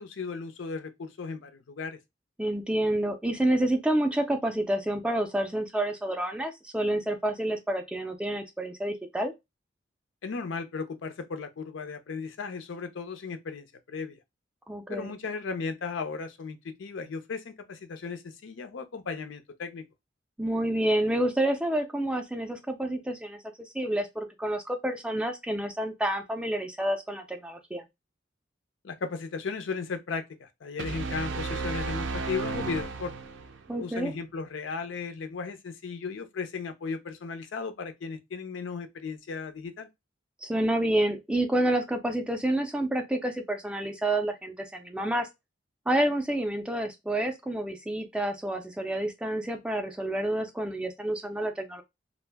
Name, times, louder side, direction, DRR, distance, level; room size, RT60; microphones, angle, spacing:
voice 1, 0.0-2.0 10.2-14.2 14.9-19.8 28.8-33.1 33.8-39.9, left 5 dB, 90° left, 0.5 m, -36 dB
voice 2, 2.4-9.3 14.7-15.1 20.4-27.8 33.7-34.1 40.4-45.3 45.9-51.8, right 1 dB, 5° right, 0.3 m, -29 dB
sound 1, 30.8-33.7, right 4 dB, 70° right, 0.4 m, -33 dB
2.5 x 2.0 x 3.3 m
head